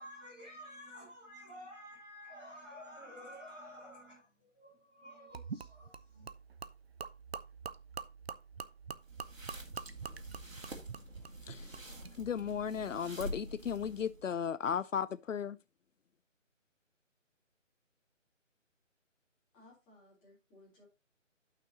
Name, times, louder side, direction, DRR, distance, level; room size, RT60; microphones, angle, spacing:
voice 1, 0.0-6.3, equal, 5° right, 0.8 m, -51 dB
Gurgling / Liquid, 5.3-12.2, right 5 dB, 50° right, 0.6 m, -46 dB
sound 1, 9.0-14.3, right 1 dB, 85° right, 2.2 m, -47 dB
voice 2, 11.5-11.8 12.2-15.6, left 7 dB, 75° left, 0.5 m, -35 dB
voice 3, 19.5-20.8, left 2 dB, 10° left, 3.3 m, -61 dB
11.5 x 5.8 x 2.8 m
figure-of-eight pair, 155°, 39 cm